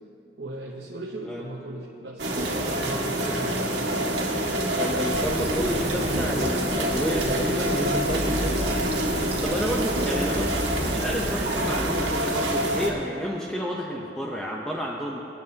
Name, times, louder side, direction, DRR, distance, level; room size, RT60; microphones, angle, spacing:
voice 1, 0.4-2.3 2.8-3.9 7.7-8.2 9.0-9.9, right 2 dB, 70° right, -2 dB, 1.0 m, -38 dB
sound 1, 2.2-12.9, right 1 dB, 90° right, 1.8 m, -26 dB
voice 2, 4.8-8.7 9.4-10.5 10.8-15.2, equal, 5° left, -3 dB, 0.7 m, -30 dB
Fill (with liquid), 5.1-12.8, right 1 dB, 35° right, 1.1 m, -34 dB
25.0 x 8.9 x 2.8 m, 2.7 s
head